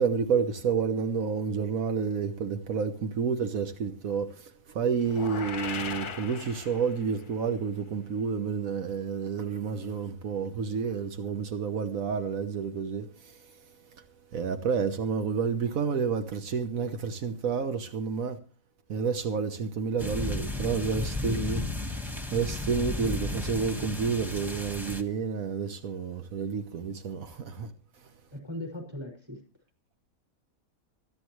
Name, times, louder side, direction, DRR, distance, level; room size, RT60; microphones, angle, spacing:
voice 1, 0.0-13.4 14.3-18.4 18.9-21.6 22.3-27.7, right 6 dB, 85° right, 1.5 m, -30 dB
sound 1, 5.0-7.2, left 6 dB, 45° left, 0.9 m, -38 dB
sound 2, 20.0-25.0, left 2 dB, ahead, 1.4 m, -34 dB
voice 2, 20.8-21.5 28.3-29.4, left 1 dB, 20° right, 6.2 m, -40 dB
25.0 x 9.5 x 3.2 m
omnidirectional pair, 1.4 m